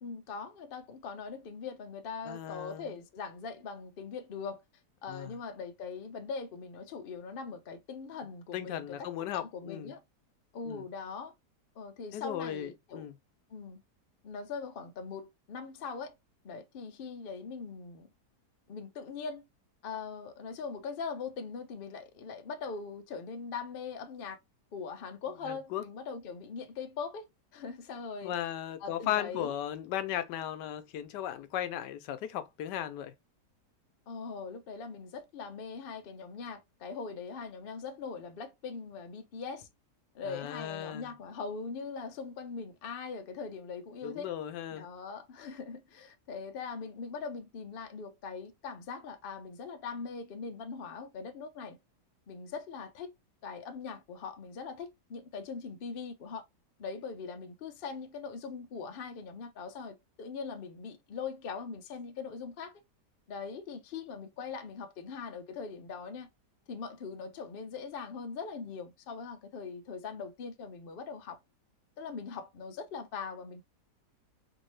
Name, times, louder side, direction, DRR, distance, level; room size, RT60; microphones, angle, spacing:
voice 1, 0.0-4.6 5.0-10.0 10.5-11.3 11.8-13.1 13.5-13.8 14.2-16.1 16.4-18.1 18.7-19.4 19.8-24.4 24.7-27.3 27.5-28.4 28.8-29.6 34.1-39.7 40.1-44.3 44.7-51.8 52.3-53.1 53.4-56.4 56.8-62.8 63.3-66.3 66.7-71.4 72.0-73.6, left 5 dB, 65° left, 0.5 m, -41 dB
voice 2, 2.3-2.9 5.1-5.4 8.5-9.9 10.7-10.8 12.1-13.1 25.4-25.8 28.2-33.1 40.3-41.1 44.0-44.9, left 11 dB, 85° left, 1.2 m, -36 dB
3.5 x 2.6 x 3.1 m
omnidirectional pair, 1.8 m